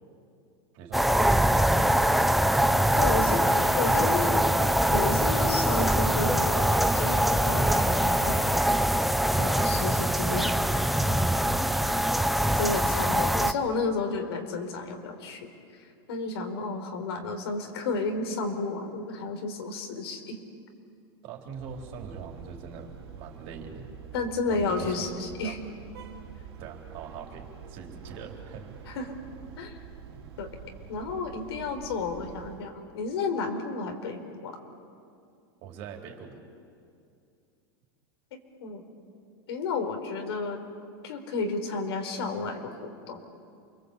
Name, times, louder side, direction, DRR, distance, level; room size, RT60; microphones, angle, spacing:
voice 1, 0.7-2.1 10.0-10.4 11.3-12.1 21.2-23.9 24.5-25.1 25.4-25.6 26.6-28.8 30.1-30.2 35.6-36.4, right 6 dB, 50° right, 2 dB, 4.2 m, -43 dB
sound 1, 0.9-13.5, equal, ahead, 0.7 m, -23 dB
voice 2, 3.0-4.4 4.9-8.4 9.4-10.7 11.0-11.2 12.5-15.5 15.8-20.4 24.1-25.6 28.9-29.2 29.6-29.8 30.4-30.5 30.9-34.6 38.3-38.8 39.5-40.6 41.0-43.2, left 4 dB, 80° left, 5 dB, 4.1 m, -32 dB
sound 2, 3.3-8.5, left 4 dB, 55° left, 4.3 m, -44 dB
sound 3, 21.5-32.7, right 7 dB, 90° right, 3.4 m, -46 dB
28.5 x 23.0 x 8.5 m, 2.4 s
supercardioid pair, 140°, 13 cm